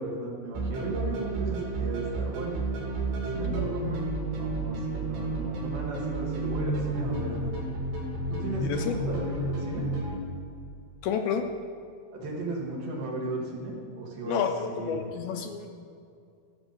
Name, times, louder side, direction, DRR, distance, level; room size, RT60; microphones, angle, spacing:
voice 1, 0.0-2.6 3.3-4.0 4.3-7.5 8.3-9.8 12.1-14.4 14.7-15.1, right 2 dB, 65° right, -3 dB, 3.8 m, -35 dB
sound 1, 0.5-10.2, right 2 dB, 85° right, 4.6 m, -31 dB
voice 2, 8.6-9.0 11.0-11.4 14.3-15.7, left 7 dB, 80° left, 5 dB, 2.3 m, -30 dB
15.0 x 6.3 x 6.9 m, 2.4 s
omnidirectional pair, 4.7 m